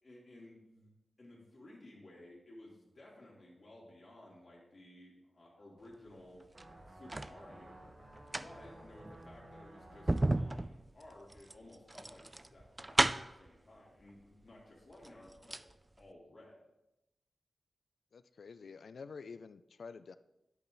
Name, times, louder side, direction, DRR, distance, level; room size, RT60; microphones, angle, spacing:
voice 1, 0.0-0.9 1.2-6.4 6.9-7.9 8.4-15.6 16.0-16.6, left 1 dB, 45° left, -5 dB, 3.6 m, -56 dB
sound 1, 6.4-7.4 8.1-13.5 14.4-14.5 14.9-15.7 16.0-16.1, right 2 dB, 20° right, 0.4 m, -34 dB
sound 2, 6.5-10.6, right 1 dB, 45° right, 2.3 m, -54 dB
voice 2, 18.1-20.2, left 5 dB, 80° left, 13 dB, 0.4 m, -49 dB
10.5 x 8.2 x 4.1 m, 0.94 s
wide cardioid pair, 90°, 0 cm